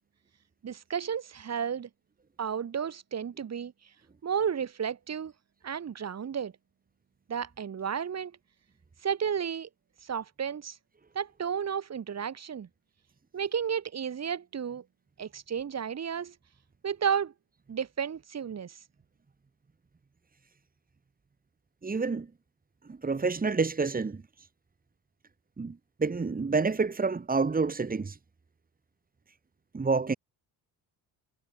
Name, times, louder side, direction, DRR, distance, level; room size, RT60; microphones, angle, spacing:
voice 1, 0.6-1.9 2.4-3.7 4.2-5.3 5.6-6.5 7.3-8.3 9.0-9.7 10.0-10.8 11.1-12.7 13.3-14.8 15.2-16.3 16.8-17.3 17.7-18.8, right 7 dB, 40° right, 7.8 m, -32 dB
voice 2, 21.8-22.3 22.9-24.2 25.6-28.2 29.7-30.1, right 4 dB, 20° right, 5.8 m, -28 dB
cardioid pair, 125°, 38 cm